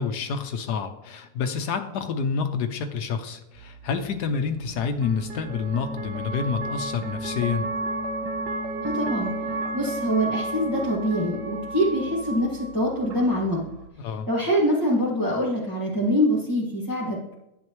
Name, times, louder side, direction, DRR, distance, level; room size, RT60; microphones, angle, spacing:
voice 1, 0.0-7.7 14.0-14.3, left 6 dB, 75° left, 7 dB, 1.2 m, -28 dB
sound 1, 3.5-13.9, right 2 dB, 80° right, 1.5 m, -33 dB
voice 2, 8.8-9.3 9.7-13.6 14.3-17.3, equal, 10° left, -5 dB, 1.7 m, -24 dB
10.5 x 8.3 x 3.1 m, 0.89 s
omnidirectional pair, 1.8 m